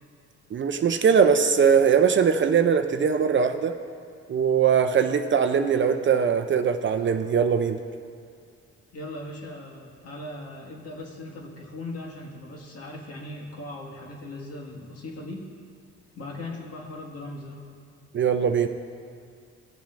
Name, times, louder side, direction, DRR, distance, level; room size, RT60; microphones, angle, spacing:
voice 1, 0.5-3.8 4.3-7.8 18.1-18.7, right 6 dB, 40° right, 7 dB, 0.5 m, -21 dB
voice 2, 8.9-15.4 16.1-17.6, left 2 dB, 55° left, -2 dB, 1.8 m, -39 dB
17.0 x 7.1 x 2.5 m, 2.3 s
cardioid pair, 90°, 30 cm